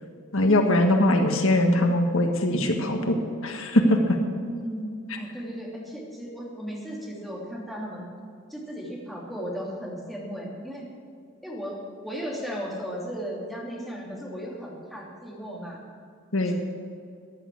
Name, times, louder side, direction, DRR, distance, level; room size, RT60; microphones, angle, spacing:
voice 1, 0.3-4.2 16.3-16.5, left 1 dB, 80° left, 4 dB, 1.6 m, -21 dB
voice 2, 4.2-8.1 8.5-10.9 11.4-15.9 16.4-16.5, equal, ahead, -4 dB, 3.0 m, -36 dB
13.5 x 10.5 x 7.9 m, 2.3 s
head